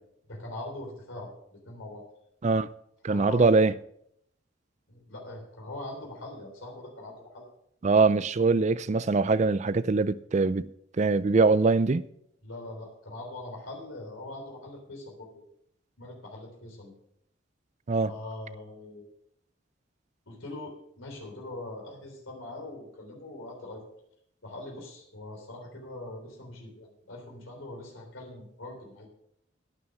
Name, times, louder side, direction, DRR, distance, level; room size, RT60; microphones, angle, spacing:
voice 1, 0.3-2.0 3.1-3.6 4.9-7.4 12.4-15.5 16.0-16.9 18.1-19.1 20.3-23.8 24.4-29.1, left 1 dB, 85° left, 3.6 m, -42 dB
voice 2, 3.0-3.7 7.8-10.7 11.0-12.0 17.9-18.1, right 3 dB, 35° right, 0.4 m, -23 dB
11.5 x 9.7 x 5.3 m
head